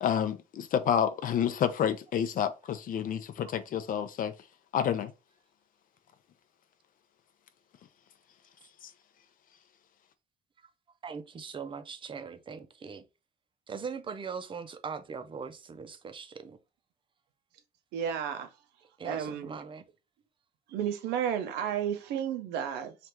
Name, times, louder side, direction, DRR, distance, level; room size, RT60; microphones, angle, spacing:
voice 1, 0.0-4.3 4.7-5.1 8.8-8.9, left 8 dB, 55° left, 0.6 m, -29 dB
voice 2, 11.0-13.0 13.7-16.6 19.0-19.8, right 6 dB, 30° right, 0.6 m, -40 dB
voice 3, 17.9-18.5 19.0-19.6 20.7-23.0, right 9 dB, 85° right, 0.7 m, -32 dB
3.4 x 2.5 x 4.4 m
cardioid pair, 110°, 17 cm